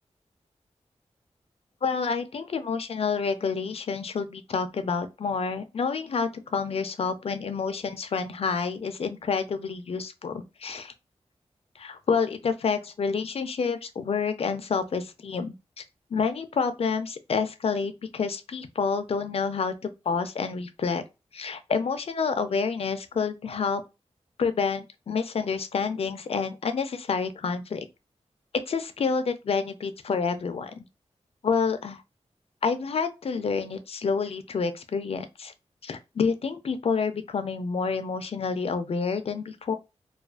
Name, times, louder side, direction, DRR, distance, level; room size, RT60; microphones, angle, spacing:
voice 1, 1.8-10.9 11.8-15.5 16.1-21.0 21.3-23.8 24.4-27.9 28.7-30.8 31.4-32.0 32.6-35.5 35.8-39.8, left 5 dB, 55° left, 0.4 m, -28 dB
2.4 x 2.3 x 2.2 m
wide cardioid pair, 100°, 12 cm